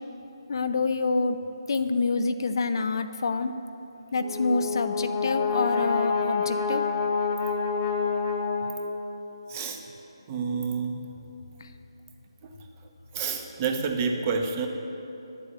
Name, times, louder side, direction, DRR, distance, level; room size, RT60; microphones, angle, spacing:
voice 1, 0.5-1.4 1.7-3.5 4.1-6.8, left 3 dB, 55° left, 9 dB, 0.6 m, -27 dB
Brass instrument, 4.1-9.2, left 5 dB, 20° left, 1.2 m, -28 dB
voice 2, 9.5-9.8 10.3-11.0 13.1-14.7, right 5 dB, 25° right, 4 dB, 0.9 m, -28 dB
9.8 x 7.6 x 8.3 m, 2.9 s
figure-of-eight pair, 155°, 3 cm